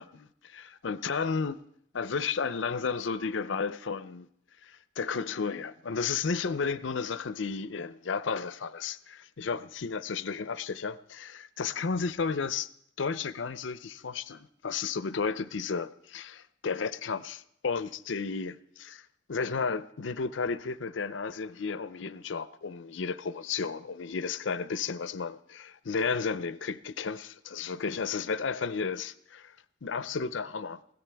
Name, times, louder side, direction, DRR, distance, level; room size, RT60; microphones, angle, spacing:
voice 1, 0.0-1.6 1.9-4.3 4.6-12.7 13.0-19.0 19.3-29.5 29.8-30.8, left 5 dB, 85° left, 0.6 m, -33 dB
21.0 x 16.5 x 3.5 m
head